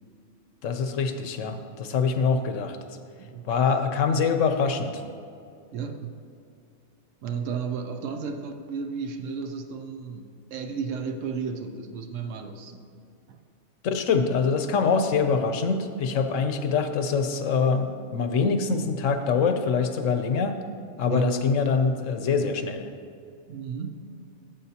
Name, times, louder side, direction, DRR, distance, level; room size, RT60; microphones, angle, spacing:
voice 1, 0.6-2.8 3.4-5.0 13.8-20.6 21.0-22.9, left 5 dB, 90° left, 7 dB, 1.1 m, -24 dB
voice 2, 5.7-6.2 7.2-12.9 13.3-13.4 21.1-21.4 23.5-24.0, right 5 dB, 85° right, 6 dB, 1.1 m, -33 dB
13.5 x 7.4 x 2.8 m, 2.4 s
omnidirectional pair, 1.3 m